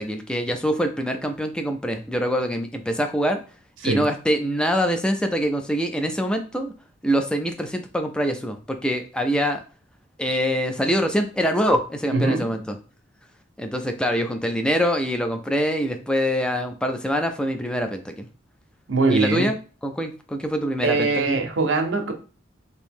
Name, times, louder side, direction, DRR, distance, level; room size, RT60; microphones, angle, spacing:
voice 1, 0.0-3.4 3.8-6.7 7.0-9.6 10.2-12.8 13.6-18.3 19.1-19.6 19.8-21.4, equal, 5° left, 0.3 m, -24 dB
voice 2, 12.1-12.5 18.9-19.5 20.8-22.1, right 3 dB, 80° right, 0.6 m, -22 dB
2.9 x 2.6 x 3.5 m
head